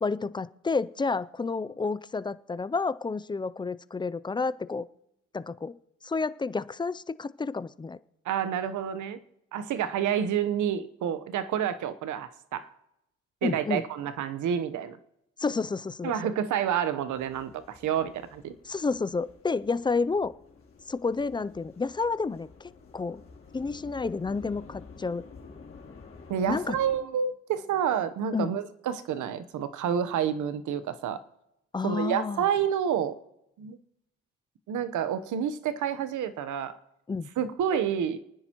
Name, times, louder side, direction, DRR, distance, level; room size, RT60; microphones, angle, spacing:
voice 1, 0.0-4.9 5.3-5.7 6.0-8.0 13.4-13.8 15.4-16.3 18.7-20.3 20.9-23.2 23.5-25.2 26.5-26.8 28.3-28.5 31.7-32.4 37.1-37.3, left 4 dB, 15° left, 17 dB, 0.4 m, -30 dB
voice 2, 8.2-9.2 9.5-12.7 13.4-15.0 16.0-18.5 26.3-31.2 31.8-33.2 33.6-33.8 34.7-36.7 37.4-38.2, right 8 dB, 75° right, 12 dB, 1.0 m, -29 dB
sound 1, 17.1-27.0, left 4 dB, 45° left, 3.2 m, -50 dB
29.0 x 9.9 x 3.0 m, 0.84 s
cardioid pair, 90°, 30 cm